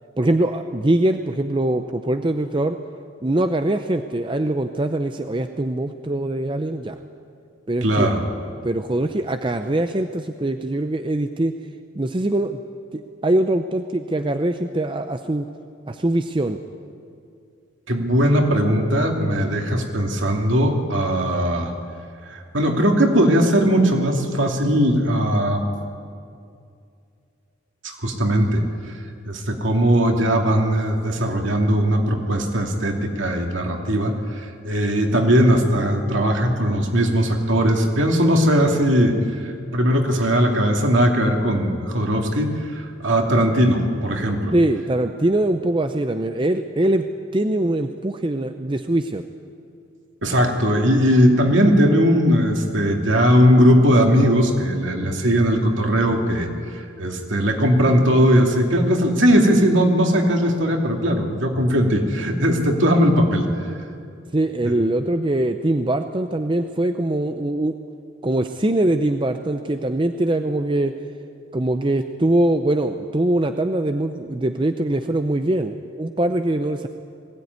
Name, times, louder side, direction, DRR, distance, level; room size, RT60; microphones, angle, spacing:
voice 1, 0.2-2.8 3.2-7.0 7.7-8.1 8.6-11.5 12.0-12.6 12.9-15.5 15.9-16.6 44.5-47.1 47.3-49.2 64.3-67.8 68.2-70.9 71.5-76.9, right 1 dB, 25° right, 7 dB, 0.6 m, -22 dB
voice 2, 7.8-8.2 17.9-21.7 22.3-25.7 27.8-28.6 29.3-44.5 50.2-56.5 56.7-63.4, equal, 60° right, 2 dB, 2.5 m, -19 dB
20.5 x 16.5 x 9.5 m, 2.4 s
head